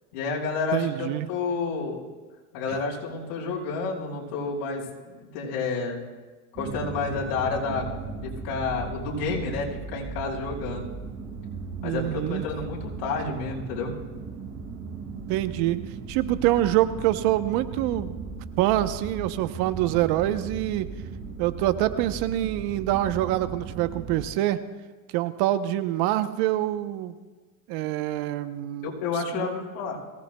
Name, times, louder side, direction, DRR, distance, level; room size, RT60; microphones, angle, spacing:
voice 1, 0.1-2.0 2.5-6.0 6.5-7.9 8.1-10.9 11.8-13.9 28.8-30.0, left 4 dB, 70° left, -3 dB, 5.0 m, -30 dB
voice 2, 0.7-1.3 2.7-2.8 11.8-12.4 15.3-15.8 16.1-18.1 18.6-20.9 21.4-24.6 25.1-27.1 27.7-28.9 29.3-29.5, right 14 dB, 55° right, 11 dB, 0.9 m, -25 dB
sound 1, 6.5-24.2, right 4 dB, 40° right, 4.6 m, -37 dB
23.5 x 17.0 x 2.3 m, 1.3 s
supercardioid pair, 115°, 46 cm